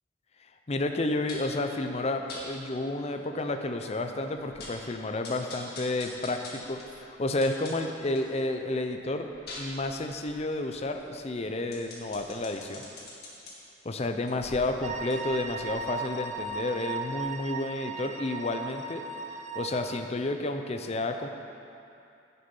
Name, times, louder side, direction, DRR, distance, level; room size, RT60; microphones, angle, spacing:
voice 1, 0.7-9.3 9.6-12.8 13.8-19.0 19.5-21.3, left 2 dB, 35° left, 5 dB, 0.6 m, -31 dB
sound 1, 1.3-1.6 2.3-2.4 3.0-3.1 3.4-3.5 3.9-4.0 4.3-4.9 5.2-8.3 8.7-13.5 14.1-16.8 17.2-17.3, left 2 dB, 60° left, 1.9 m, -45 dB
sound 2, 14.8-19.8, right 4 dB, 40° right, 0.5 m, -37 dB
10.0 x 6.9 x 5.4 m, 2.7 s
head